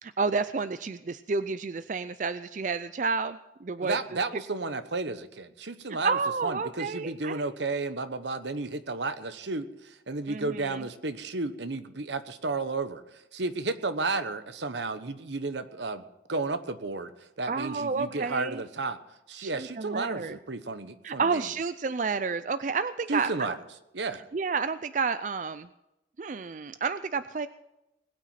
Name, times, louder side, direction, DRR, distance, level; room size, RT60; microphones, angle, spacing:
voice 1, 0.0-4.0 4.3-4.4 6.0-7.4 10.3-10.8 17.5-18.6 19.4-20.4 21.0-23.6 24.3-25.7 26.2-27.5, right 4 dB, 45° right, 13 dB, 0.4 m, -30 dB
voice 2, 3.8-16.0 16.3-17.1 17.4-19.0 19.3-21.5 23.1-23.5 23.9-24.2, right 3 dB, 75° right, 11 dB, 1.1 m, -32 dB
20.5 x 9.1 x 5.8 m, 0.91 s
head